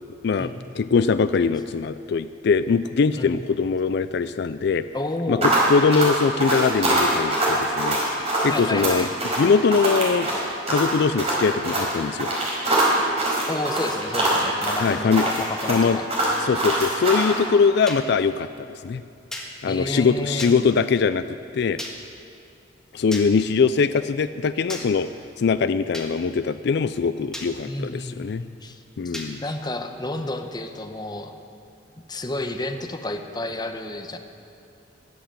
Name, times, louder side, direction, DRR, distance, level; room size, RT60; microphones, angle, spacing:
voice 1, 0.2-4.9 5.3-8.0 8.4-9.1 9.4-10.3 10.7-12.3 14.8-15.4 15.7-16.0 16.4-19.0 19.6-21.2 21.5-21.8 22.9-25.1 25.4-28.4 29.0-29.4, left 5 dB, 65° left, 12 dB, 0.4 m, -22 dB
voice 2, 4.9-5.6 8.5-9.1 13.5-16.1 19.7-20.6 27.6-28.8 29.0-31.3 32.1-34.2, left 2 dB, 25° left, 5 dB, 0.9 m, -31 dB
sound 1, 5.4-17.4, right 1 dB, 35° right, 4.6 m, -23 dB
sound 2, 17.9-18.0 19.3-19.5 20.4-20.5 21.8-21.9 23.1-23.3 24.7-24.8 25.9-26.1 27.3-27.5 29.1-29.3, left 1 dB, 5° left, 1.5 m, -33 dB
20.0 x 8.0 x 7.5 m, 2.5 s
head